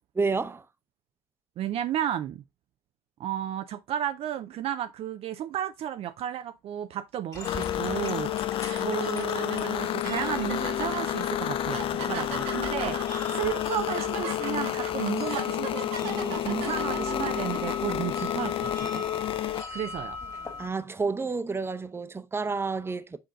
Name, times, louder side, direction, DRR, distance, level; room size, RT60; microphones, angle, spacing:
voice 1, 0.2-0.6 19.7-19.8 20.6-23.2, right 4 dB, 20° right, 0.8 m, -30 dB
voice 2, 1.6-2.4 3.2-19.1 19.7-20.2, right 10 dB, 55° right, 0.5 m, -33 dB
sound 1, 7.3-20.7, left 3 dB, 30° left, 2.0 m, -40 dB
sound 2, 7.4-19.6, left 12 dB, 50° left, 0.4 m, -30 dB
sound 3, 7.9-8.1 8.6-17.9, right 5 dB, 85° right, 1.8 m, -38 dB
6.9 x 3.8 x 3.8 m
supercardioid pair, 75°, 12 cm